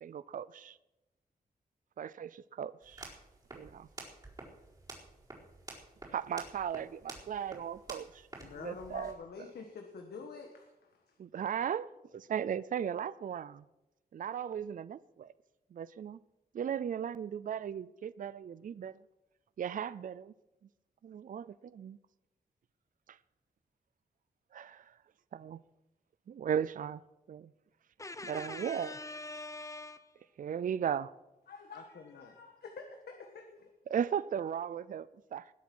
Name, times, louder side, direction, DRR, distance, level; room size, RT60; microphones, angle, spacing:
voice 1, 0.0-0.8 2.0-3.0 3.5-3.9 6.1-9.2 11.2-13.6 14.1-15.3 15.7-16.2 16.5-18.9 19.6-20.3 21.0-22.0 24.5-24.9 25.3-25.6 26.3-27.0 27.3-27.5 28.2-29.0 30.4-31.1 33.9-35.5, right 8 dB, 55° right, 0.4 m, -37 dB
sound 1, 2.8-9.1, right 2 dB, 25° right, 4.4 m, -50 dB
voice 2, 8.4-11.2 31.5-33.7, left 4 dB, 90° left, 1.6 m, -47 dB
voice 3, 28.0-30.1, left 2 dB, 20° left, 0.9 m, -43 dB
20.0 x 8.2 x 6.2 m
wide cardioid pair, 115°, 16 cm